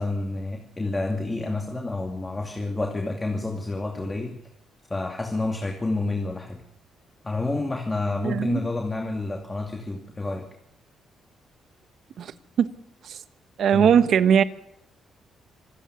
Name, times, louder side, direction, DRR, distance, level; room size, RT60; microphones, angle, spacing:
voice 1, 0.0-4.4 4.9-6.6 7.2-10.5 13.7-14.0, left 2 dB, 20° left, 2.5 m, -29 dB
voice 2, 8.2-8.6 12.2-12.3 12.6-12.7 13.6-14.4, right 8 dB, 65° right, 1.2 m, -19 dB
26.0 x 10.5 x 9.6 m
cardioid pair, 90°, 0 cm